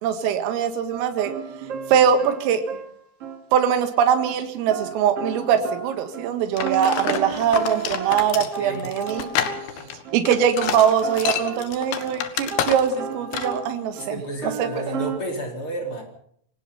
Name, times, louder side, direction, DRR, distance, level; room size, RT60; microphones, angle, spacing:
voice 1, 0.0-1.3 1.9-2.6 3.5-9.3 10.1-14.1 14.6-15.0, right 8 dB, 85° right, 8 dB, 4.3 m, -22 dB
sound 1, 0.9-3.4 4.2-4.4 4.7-10.2 10.6-11.7 12.0-12.2 12.5-14.1 14.4-15.2, right 6 dB, 45° right, 2.3 m, -34 dB
sound 2, 6.6-13.1 13.3-13.6, left 9 dB, 65° left, 3.4 m, -28 dB
voice 2, 8.3-8.9 9.8-9.9 14.0-16.0, equal, 25° left, 3 dB, 4.4 m, -32 dB
27.0 x 18.5 x 5.6 m, 0.64 s
omnidirectional pair, 5.8 m